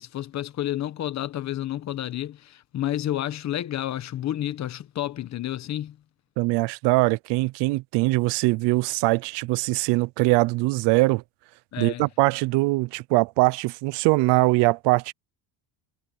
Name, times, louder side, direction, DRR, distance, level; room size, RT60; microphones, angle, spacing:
voice 1, 0.0-6.0 11.7-12.1, left 12 dB, 35° left, 1.2 m, -30 dB
voice 2, 6.4-11.2 11.8-15.1, right 23 dB, 65° right, 0.6 m, -22 dB
cardioid pair, 155°, 45 cm